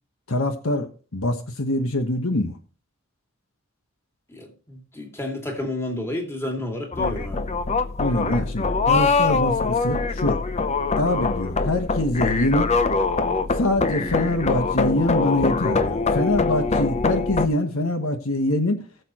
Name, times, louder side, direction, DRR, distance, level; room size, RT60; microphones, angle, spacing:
voice 1, 0.3-2.6 8.0-10.4 11.0-12.7 13.6-18.8, left 1 dB, 70° left, 1.3 m, -24 dB
voice 2, 4.3-7.4, left 1 dB, 10° left, 2.4 m, -31 dB
sound 1, 6.9-17.5, left 4 dB, 30° left, 0.7 m, -23 dB
19.5 x 6.9 x 3.0 m
head